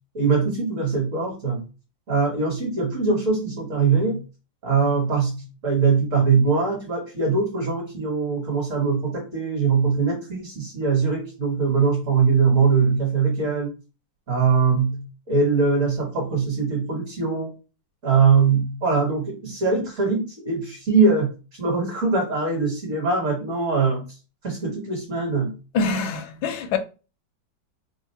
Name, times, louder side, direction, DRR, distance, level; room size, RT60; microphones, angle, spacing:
voice 1, 0.1-1.6 2.1-4.2 4.6-13.7 14.3-17.5 18.0-24.0 24.4-25.5, right 5 dB, 45° right, 1.4 m, -22 dB
voice 2, 25.7-26.8, left 4 dB, 85° left, 1.4 m, -24 dB
3.6 x 2.5 x 4.3 m
omnidirectional pair, 2.1 m